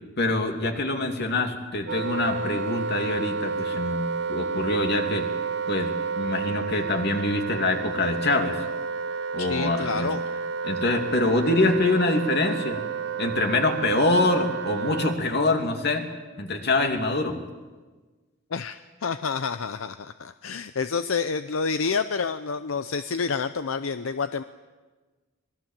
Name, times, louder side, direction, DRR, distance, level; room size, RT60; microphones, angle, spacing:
voice 1, 0.2-5.3 5.7-8.7 9.3-10.1 10.6-12.8 13.2-16.1 16.4-17.4, left 2 dB, 55° left, 4 dB, 2.8 m, -25 dB
Wind instrument woodwind instrument, 1.9-15.2, right 5 dB, 60° right, 0.7 m, -30 dB
voice 2, 9.4-10.2 18.5-24.4, left 5 dB, 80° left, 11 dB, 0.7 m, -28 dB
26.0 x 20.5 x 7.5 m, 1.3 s
head